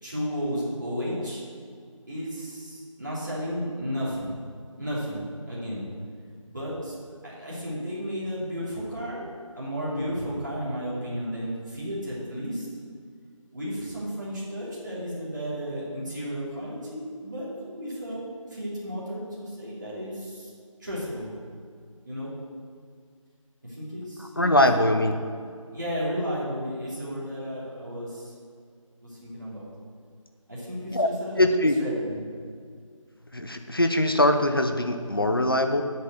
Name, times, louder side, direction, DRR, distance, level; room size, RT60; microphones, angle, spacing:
voice 1, 0.0-1.4 2.1-4.3 4.8-5.8 6.4-6.9 7.2-9.3 9.5-12.7 13.5-18.2 18.5-20.5 20.8-21.3 22.0-22.3 23.6-24.9 25.2-25.3 25.7-28.3 29.0-29.7 30.5-31.4 31.8-32.2, equal, 35° right, -8 dB, 2.9 m, -33 dB
voice 2, 24.2-25.1 30.9-31.1 31.4-31.8 33.3-35.8, left 1 dB, 40° left, 6 dB, 0.8 m, -22 dB
8.3 x 8.2 x 6.5 m, 2.1 s
figure-of-eight pair, 175°, 18 cm